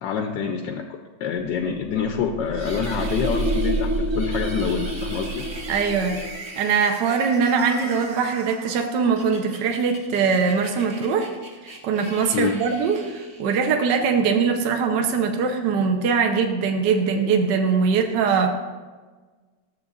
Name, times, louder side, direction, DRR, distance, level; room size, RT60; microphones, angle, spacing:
voice 1, 0.0-5.4 12.3-12.6, left 6 dB, 70° left, 5 dB, 1.2 m, -26 dB
sound 1, 1.4-6.4, right 1 dB, 85° right, 2.3 m, -28 dB
sound 2, 2.5-13.8, right 2 dB, 40° right, 1.4 m, -40 dB
voice 2, 5.7-6.2 6.6-11.3 11.8-18.6, right 5 dB, 65° right, 3 dB, 1.3 m, -22 dB
13.0 x 7.6 x 2.4 m, 1.3 s
omnidirectional pair, 2.2 m